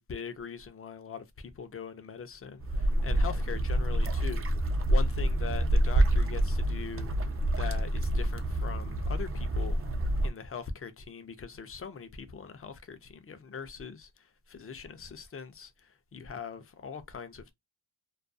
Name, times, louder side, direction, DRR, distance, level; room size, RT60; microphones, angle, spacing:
voice 1, 0.0-4.5 4.9-7.1 7.5-9.8 10.2-14.1 14.5-17.5, left 6 dB, 30° left, 0.4 m, -41 dB
sound 1, 2.6-10.3, right 1 dB, 30° right, 0.4 m, -27 dB
2.4 x 2.2 x 2.5 m
wide cardioid pair, 115°, 46 cm